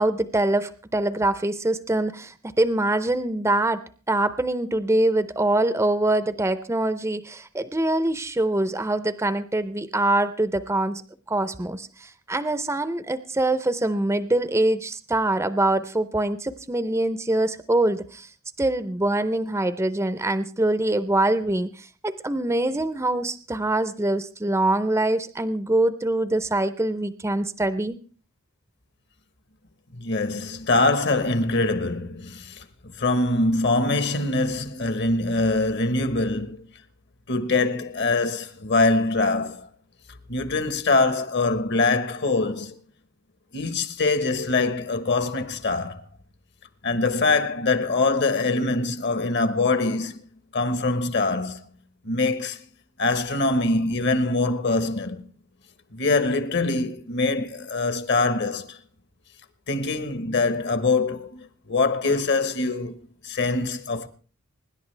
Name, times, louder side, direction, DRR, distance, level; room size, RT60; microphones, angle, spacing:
voice 1, 0.0-3.8 4.1-11.0 11.3-18.3 18.6-28.0, right 2 dB, 15° right, 0.6 m, -24 dB
voice 2, 29.9-36.7 37.3-39.7 40.3-42.8 43.5-46.0 46.8-50.2 50.5-51.6 52.0-52.6 53.0-55.2 55.9-58.8 59.7-64.1, left 3 dB, 55° left, 1.2 m, -24 dB
25.0 x 11.0 x 3.3 m
head